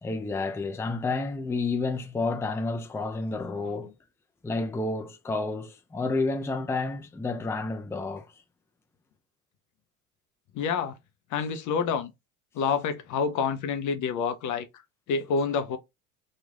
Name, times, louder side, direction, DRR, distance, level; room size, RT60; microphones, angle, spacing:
voice 1, 0.0-3.9 4.4-8.2, left 3 dB, 5° left, 0.6 m, -30 dB
voice 2, 10.5-10.9 11.3-12.1 12.6-14.6 15.1-15.8, left 6 dB, 45° left, 0.7 m, -28 dB
3.1 x 2.4 x 3.6 m
hypercardioid pair, 75°, 43 cm